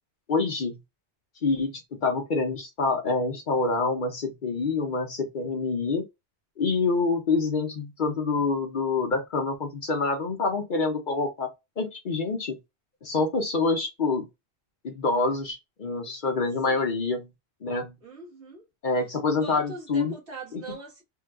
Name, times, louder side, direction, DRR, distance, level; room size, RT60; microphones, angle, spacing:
voice 1, 0.3-0.8 1.4-6.0 6.6-12.6 13.0-14.3 14.8-17.3 17.6-17.9 18.8-20.1 20.5-20.6, left 3 dB, 50° left, 0.8 m, -26 dB
voice 2, 18.0-18.7 19.4-21.0, right 3 dB, 75° right, 1.9 m, -41 dB
3.7 x 2.4 x 2.3 m
omnidirectional pair, 1.1 m